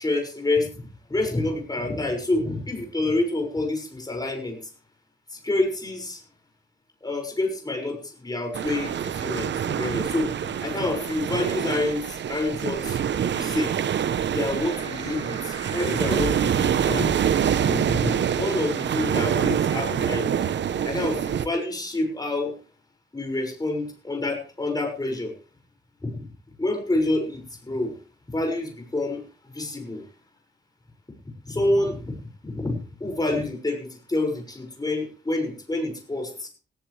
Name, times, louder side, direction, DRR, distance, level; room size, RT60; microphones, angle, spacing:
voice 1, 0.0-4.6 5.3-6.2 7.0-13.0 13.3-13.7 14.3-20.5 20.8-22.5 23.1-25.3 26.0-26.1 26.6-27.9 28.3-29.2 29.5-30.0 31.4-32.2 32.4-36.5, left 2 dB, 20° left, 3 dB, 6.2 m, -28 dB
sound 1, 8.5-21.5, right 9 dB, 85° right, 0.9 m, -26 dB
sound 2, 13.9-17.1, right 1 dB, 20° right, 5.7 m, -45 dB
18.0 x 15.0 x 3.4 m, 0.38 s
wide cardioid pair, 105°, 18 cm